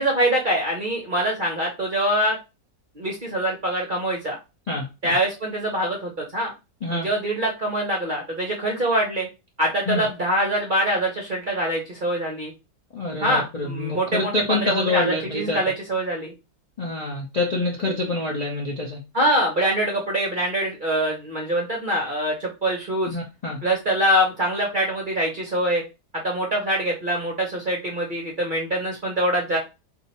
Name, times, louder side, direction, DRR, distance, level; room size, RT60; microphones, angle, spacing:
voice 1, 0.0-2.4 3.0-4.4 5.0-6.5 6.9-9.3 9.6-12.5 13.2-16.3 19.1-23.2 23.6-25.8 26.2-29.6, right 1 dB, 50° right, -1 dB, 0.6 m, -24 dB
voice 2, 4.7-5.1 6.8-7.1 9.9-10.1 12.9-15.6 16.8-19.0 23.1-23.6, left 2 dB, 55° left, -2 dB, 0.4 m, -26 dB
2.7 x 2.6 x 4.2 m, 0.27 s
omnidirectional pair, 1.8 m